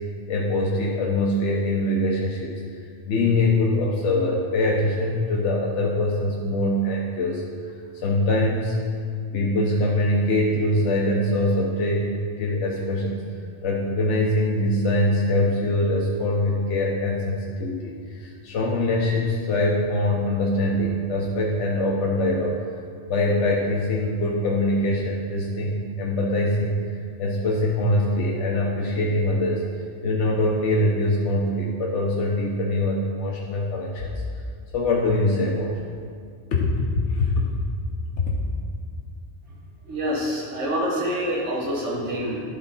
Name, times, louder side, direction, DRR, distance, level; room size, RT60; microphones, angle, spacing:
voice 1, 0.3-2.5 3.0-8.8 9.3-12.1 12.4-13.2 13.6-22.6 23.1-26.8 27.2-29.7 30.0-34.1 34.7-35.8 36.5-37.5 38.2-38.4, left 1 dB, 85° left, -2 dB, 1.1 m, -23 dB
voice 2, 39.9-42.4, equal, 85° right, -4 dB, 1.6 m, -26 dB
11.5 x 3.9 x 4.0 m, 2.2 s
omnidirectional pair, 1.2 m